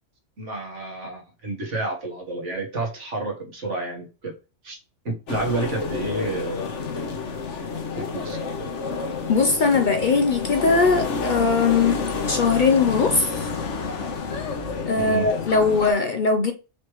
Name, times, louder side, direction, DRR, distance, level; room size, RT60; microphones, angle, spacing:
voice 1, 0.4-4.3 4.6-4.8 5.1-6.7 8.0-8.4 15.0-15.3, right 2 dB, 80° right, 1.8 m, -30 dB
sound 1, 5.3-15.9, left 4 dB, 85° left, 1.3 m, -29 dB
voice 2, 9.3-12.0 12.3-13.5 14.8-16.5, left 4 dB, 50° left, 0.7 m, -20 dB
5.1 x 3.3 x 3.1 m
omnidirectional pair, 1.2 m